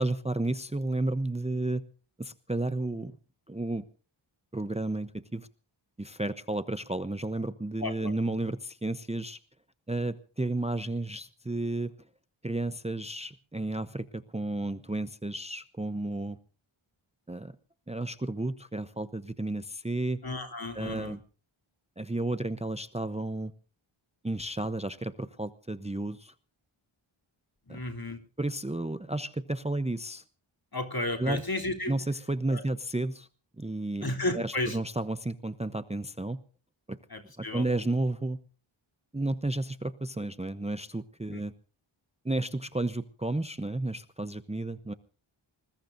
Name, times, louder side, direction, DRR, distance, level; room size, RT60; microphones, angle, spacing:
voice 1, 0.0-1.8 2.2-3.2 3.5-3.8 4.5-5.5 6.0-9.4 9.9-11.9 12.4-16.4 17.3-17.5 17.9-20.2 20.7-21.2 22.0-23.5 24.2-26.3 27.7-27.8 28.4-30.2 31.2-31.4 31.9-33.3 33.6-36.4 36.9-37.0 37.4-38.4 39.1-41.5 42.2-44.9, right 2 dB, 15° right, 13 dB, 0.8 m, -32 dB
voice 2, 7.8-8.1 20.2-21.2 27.7-28.2 30.7-31.9 32.5-32.6 34.0-34.8 37.1-37.6 41.3-41.4, left 2 dB, 45° left, 4 dB, 3.3 m, -33 dB
25.0 x 20.5 x 2.6 m, 0.39 s
wide cardioid pair, 65°, 49 cm